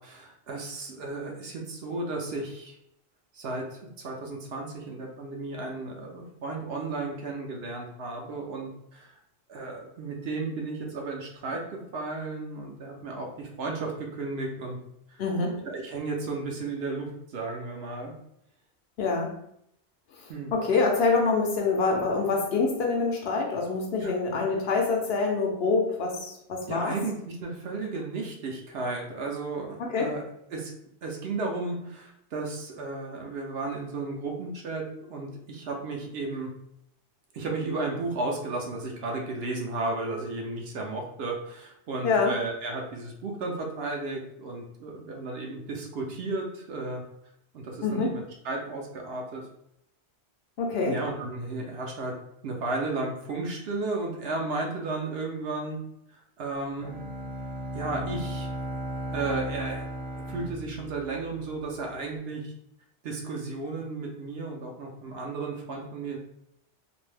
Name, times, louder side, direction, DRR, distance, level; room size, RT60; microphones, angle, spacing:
voice 1, 0.0-2.8 3.3-9.2 9.5-14.8 15.1-15.2 15.6-18.1 20.3-20.5 24.0-24.1 26.7-30.2 30.5-30.7 31.0-36.5 37.3-47.0 47.5-49.4 50.8-52.1 52.4-55.8 56.1-57.0 57.7-58.5 59.1-59.8 60.3-62.5 63.0-66.2, right 3 dB, 65° right, 0 dB, 0.8 m, -34 dB
voice 2, 15.2-15.5 19.0-19.3 20.5-26.9 29.8-30.1 42.0-42.3 47.8-48.1 50.6-51.0, left 4 dB, 65° left, 1 dB, 0.8 m, -25 dB
Bowed string instrument, 56.8-61.8, right 1 dB, 10° right, 0.5 m, -36 dB
2.6 x 2.1 x 3.1 m, 0.76 s
omnidirectional pair, 1.2 m